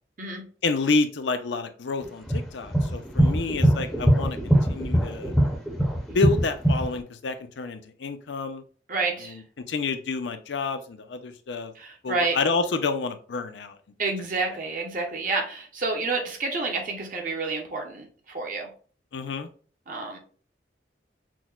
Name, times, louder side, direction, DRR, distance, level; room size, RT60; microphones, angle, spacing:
voice 1, 0.6-5.3 6.1-8.6 9.2-9.4 9.7-11.7 12.0-13.8 19.1-19.5, left 4 dB, 75° left, 9 dB, 0.5 m, -29 dB
sound 1, 2.3-7.0, right 1 dB, ahead, 0.6 m, -21 dB
voice 2, 8.9-9.4 11.7-12.4 14.0-18.7 19.9-20.2, right 3 dB, 45° right, 1 dB, 0.7 m, -29 dB
6.0 x 2.1 x 2.3 m, 0.42 s
head